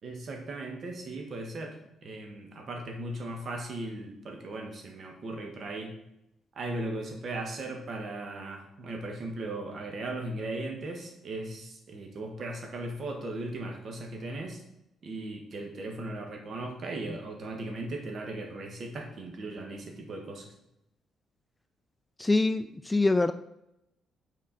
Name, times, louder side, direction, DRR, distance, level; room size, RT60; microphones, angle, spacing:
voice 1, 0.0-1.8 2.0-5.9 6.5-14.6 15.0-20.5, right 2 dB, 50° right, 3 dB, 1.4 m, -37 dB
voice 2, 22.2-23.3, left 2 dB, 15° left, 11 dB, 0.3 m, -25 dB
6.1 x 4.4 x 4.2 m, 0.84 s
cardioid pair, 90°, 0 cm